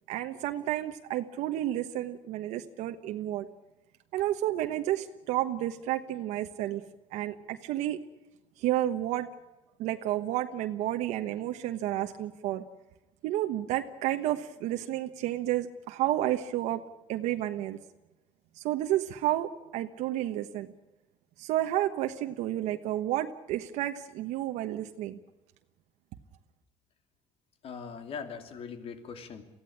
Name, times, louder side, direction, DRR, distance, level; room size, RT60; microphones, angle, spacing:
voice 1, 0.1-3.5 4.1-6.8 7.1-8.0 8.6-9.3 9.8-12.6 13.2-16.8 17.1-17.8 18.6-20.7 21.4-25.2, right 13 dB, 90° right, 5 dB, 1.2 m, -31 dB
voice 2, 27.6-29.4, left 6 dB, 55° left, 8 dB, 2.9 m, -40 dB
23.5 x 15.5 x 9.9 m, 1.0 s
cardioid pair, 120°, 12 cm